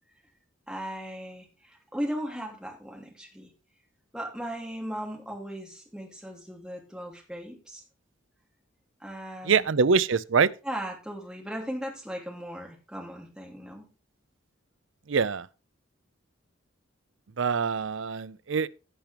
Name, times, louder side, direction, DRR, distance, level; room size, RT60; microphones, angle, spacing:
voice 1, 0.7-3.5 4.1-7.8 9.0-9.7 10.6-13.8, equal, 5° right, 2.8 m, -37 dB
voice 2, 9.4-10.5 15.1-15.5 17.4-18.7, right 5 dB, 75° right, 0.5 m, -24 dB
16.5 x 6.0 x 3.4 m
head